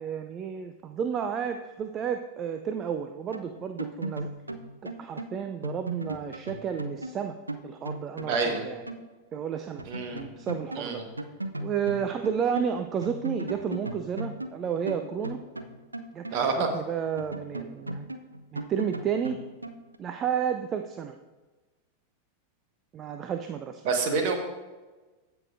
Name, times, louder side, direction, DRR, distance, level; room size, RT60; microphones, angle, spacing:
voice 1, 0.0-4.3 4.8-7.4 7.6-8.8 9.3-9.8 10.1-11.0 11.6-15.4 16.1-18.1 18.5-19.4 20.0-21.1 22.9-23.8, right 8 dB, 30° right, 7 dB, 0.5 m, -31 dB
sound 1, 3.3-9.1 9.3-9.4 9.8-12.7 13.0-16.8 17.2-20.0, right 1 dB, 80° right, 0.5 m, -37 dB
voice 2, 8.3-8.7 9.8-10.2 10.7-11.0 16.3-16.7 23.8-24.3, right 4 dB, 45° right, 4 dB, 1.4 m, -27 dB
15.5 x 5.8 x 2.6 m, 1.2 s
figure-of-eight pair, 90°, 0 cm